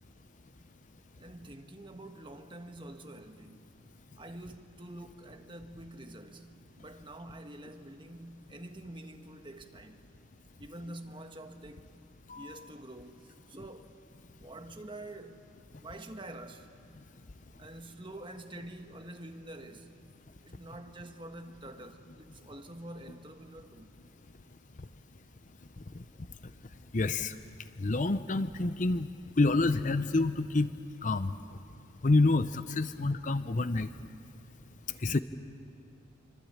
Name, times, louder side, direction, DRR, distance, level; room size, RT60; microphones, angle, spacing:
voice 1, 1.2-3.9 4.2-10.0 10.6-11.9 12.3-13.9 14.3-15.5 15.8-16.7 17.6-20.0 20.4-24.0, right 1 dB, 25° right, 1.4 m, -47 dB
voice 2, 26.9-27.3 27.8-29.1 29.4-30.7 31.0-31.3 32.0-33.9 35.0-35.2, left 2 dB, 35° left, 0.6 m, -27 dB
27.5 x 24.5 x 8.8 m
head